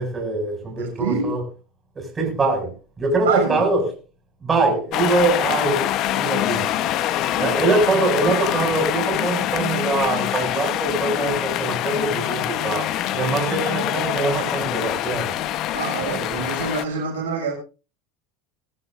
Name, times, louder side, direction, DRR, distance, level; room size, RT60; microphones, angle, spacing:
voice 1, 0.0-1.5 2.0-2.7 3.0-3.9 4.4-6.7 7.3-15.3 16.1-16.4, right 3 dB, 25° right, 7.1 m, -23 dB
voice 2, 0.8-1.3 3.2-3.7 7.4-7.6 13.2-13.4 15.7-17.5, right 5 dB, 85° right, 6.7 m, -26 dB
sound 1, 4.9-16.8, left 12 dB, 50° left, 1.2 m, -24 dB
21.5 x 13.5 x 2.7 m
hypercardioid pair, 90°, 0 cm